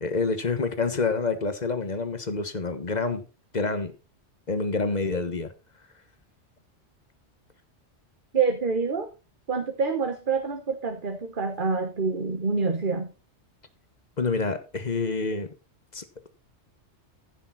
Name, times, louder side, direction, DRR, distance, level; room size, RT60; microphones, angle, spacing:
voice 1, 0.0-3.2 3.5-3.9 4.5-5.5 14.2-15.5 15.9-16.3, left 4 dB, 40° left, 1.4 m, -27 dB
voice 2, 8.3-9.1 9.5-13.1, right 4 dB, 45° right, 1.4 m, -26 dB
14.5 x 6.9 x 4.1 m
omnidirectional pair, 1.2 m